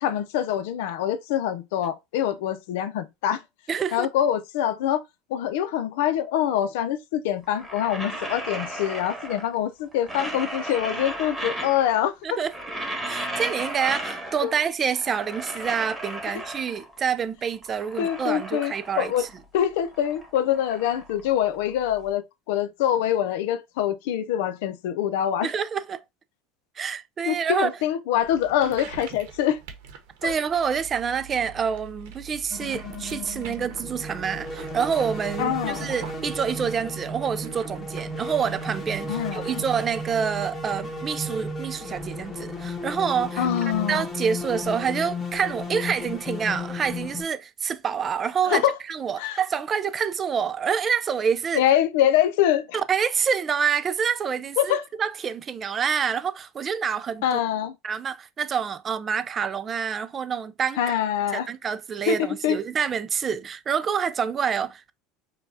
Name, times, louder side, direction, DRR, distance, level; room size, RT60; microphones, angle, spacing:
voice 1, 0.0-3.4 3.9-5.0 5.3-12.4 14.4-14.6 16.3-16.4 18.0-19.2 19.5-25.5 27.3-29.6 30.2-30.3 35.4-35.9 39.1-39.6 43.4-44.1 48.5-48.7 49.2-49.4 51.5-52.8 54.6-54.8 57.2-57.7 60.8-61.5 62.1-62.6, left 10 dB, 80° left, 0.6 m, -25 dB
voice 2, 3.7-4.1 12.2-12.5 13.1-19.3 25.4-26.0 26.8-27.7 28.6-28.7 30.2-51.6 52.7-57.2 57.8-61.0 61.3-64.9, right 7 dB, 25° right, 0.4 m, -27 dB
sound 1, 7.4-9.6 9.9-12.1 12.4-14.6 14.9-17.0 17.4-19.4 19.7-21.9, right 1 dB, 5° right, 1.2 m, -35 dB
sound 2, 28.2-42.8, right 7 dB, 85° right, 1.1 m, -45 dB
sound 3, 32.5-47.2, left 1 dB, 15° left, 1.2 m, -34 dB
6.7 x 2.3 x 2.7 m
supercardioid pair, 140°, 0 cm